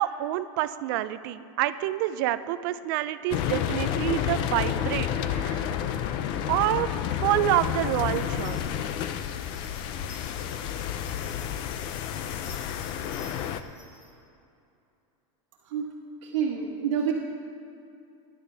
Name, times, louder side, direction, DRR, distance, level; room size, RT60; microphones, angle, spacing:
voice 1, 0.0-5.7 6.5-6.9 7.2-8.8, right 14 dB, 40° right, 13 dB, 0.4 m, -27 dB
sound 1, 3.3-13.6, left 9 dB, 30° left, 0.4 m, -30 dB
sound 2, 8.1-14.1, left 2 dB, 55° left, 3.0 m, -52 dB
voice 2, 16.2-17.1, right 8 dB, 65° right, -3 dB, 1.4 m, -28 dB
20.0 x 11.0 x 3.4 m, 2.7 s
supercardioid pair, 175°, 16 cm